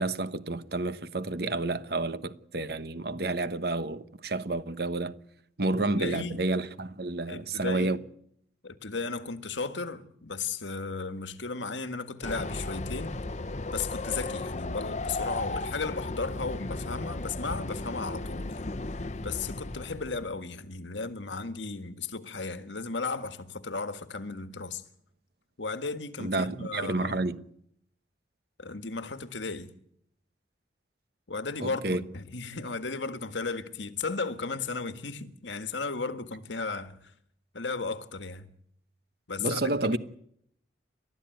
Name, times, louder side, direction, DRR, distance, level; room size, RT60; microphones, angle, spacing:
voice 1, 0.0-5.2 5.6-8.0 26.2-27.4 31.6-32.0 39.4-40.0, right 2 dB, 55° right, 1.2 m, -30 dB
voice 2, 5.8-6.4 7.3-7.9 8.6-13.1 13.7-18.6 19.2-24.8 25.6-27.2 28.6-29.7 31.3-37.0 37.5-38.5 39.3-40.0, left 4 dB, 80° left, 1.6 m, -35 dB
Train, 12.2-20.4, left 2 dB, 40° left, 0.9 m, -35 dB
29.5 x 13.5 x 9.2 m
head